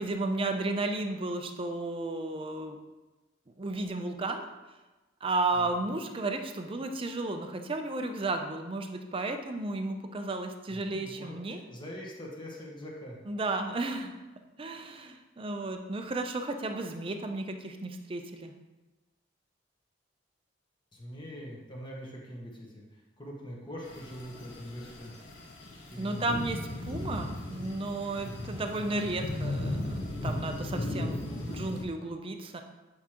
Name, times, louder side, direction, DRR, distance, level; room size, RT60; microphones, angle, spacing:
voice 1, 0.0-2.8 3.6-4.5 5.2-11.6 13.3-14.1 14.6-18.5 26.0-32.6, right 2 dB, 30° right, 5 dB, 0.5 m, -33 dB
voice 2, 5.5-6.0 10.7-13.2 20.9-25.1 25.9-26.3 31.2-31.7, equal, 25° left, -2 dB, 1.2 m, -43 dB
sound 1, 23.8-31.8, left 1 dB, 75° left, 1.1 m, -36 dB
8.2 x 4.8 x 2.9 m, 1.1 s
head